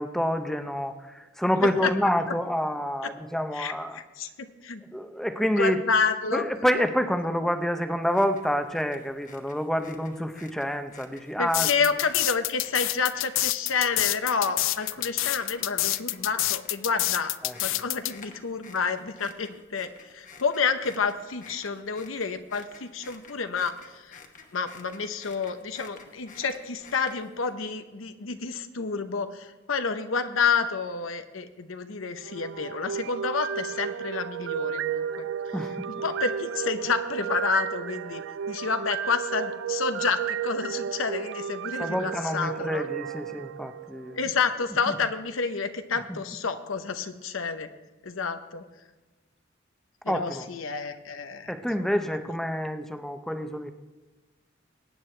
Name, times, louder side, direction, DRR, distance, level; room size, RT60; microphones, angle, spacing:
voice 1, 0.0-4.0 4.9-5.8 6.3-11.7 17.4-17.8 35.5-35.9 41.8-44.2 44.9-45.0 46.1-46.2 50.1-50.4 51.5-53.7, equal, ahead, 7 dB, 0.7 m, -28 dB
voice 2, 3.5-4.3 4.6-4.8 5.5-6.4 11.4-17.3 17.6-24.2 24.5-35.3 35.9-42.8 44.1-47.7 48.0-48.6 50.0-51.8, left 5 dB, 85° left, 9 dB, 0.9 m, -29 dB
sound 1, 8.0-27.5, left 5 dB, 40° left, 1.1 m, -51 dB
sound 2, 11.5-18.1, left 17 dB, 70° left, 0.4 m, -27 dB
sound 3, 32.2-44.3, right 8 dB, 65° right, 0.3 m, -33 dB
22.5 x 9.3 x 3.3 m, 1.2 s
head